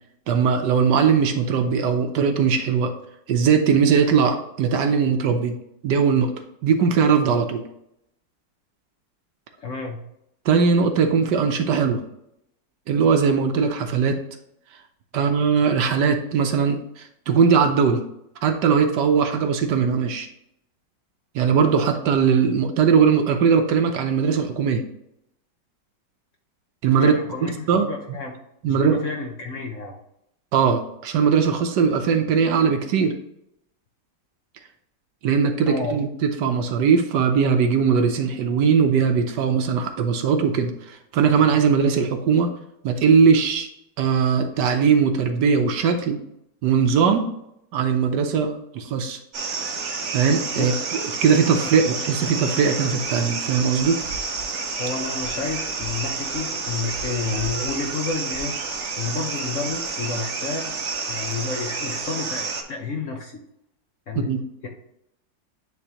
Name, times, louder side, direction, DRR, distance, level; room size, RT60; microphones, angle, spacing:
voice 1, 0.3-2.9 3.3-5.6 5.8-6.3 6.6-7.6 10.4-12.0 12.9-14.2 15.1-18.0 18.4-20.3 21.3-24.8 26.8-27.1 27.7-27.9 28.6-29.0 30.5-33.1 35.2-42.5 42.8-43.7 44.0-46.2 46.6-47.3 47.7-49.2 50.1-50.7 51.2-54.0 64.3-64.4, right 6 dB, 70° right, 6 dB, 1.3 m, -20 dB
voice 2, 9.6-10.0 27.0-28.4 28.7-30.0 35.7-35.9 50.6-50.8 54.8-58.6 59.0-60.7 61.1-63.4 64.1-64.3 64.6-64.7, left 4 dB, 55° left, 2 dB, 0.9 m, -30 dB
sound 1, 49.3-62.6, right 4 dB, 55° right, 0.9 m, -29 dB
9.3 x 3.5 x 2.9 m, 0.78 s
omnidirectional pair, 2.0 m